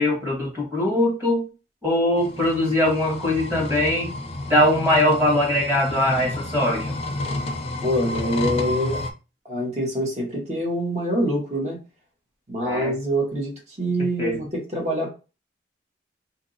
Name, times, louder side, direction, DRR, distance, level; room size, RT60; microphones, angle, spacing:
voice 1, 0.0-1.4 1.8-4.1 4.5-6.9 12.6-12.9 14.2-14.4, left 1 dB, 15° right, -3 dB, 1.4 m, -21 dB
sound 1, 2.2-9.1, left 2 dB, 35° left, 0.5 m, -30 dB
voice 2, 7.8-9.0 9.4-11.8 12.5-15.1, equal, 40° right, -1 dB, 1.3 m, -25 dB
2.9 x 2.7 x 4.0 m, 0.32 s
head